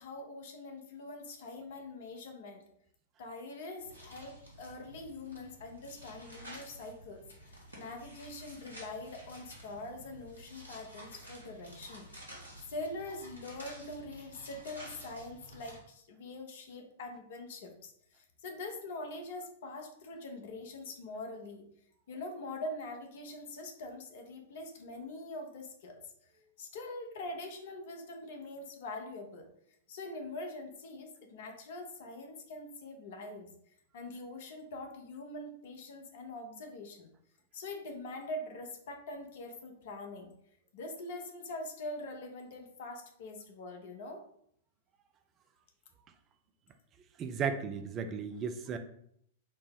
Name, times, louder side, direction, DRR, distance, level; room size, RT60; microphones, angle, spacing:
voice 1, 0.0-2.6 3.2-12.1 12.7-21.6 22.1-26.1 26.6-29.5 29.9-33.5 33.9-37.1 37.5-40.3 40.7-44.2, left 2 dB, 55° left, 4 dB, 0.7 m, -43 dB
sound 1, 3.8-15.8, equal, 90° right, 1.1 m, -51 dB
voice 2, 47.2-48.8, right 6 dB, 30° right, 8 dB, 0.4 m, -35 dB
4.2 x 2.0 x 3.5 m, 0.69 s
figure-of-eight pair, 100°, 0 cm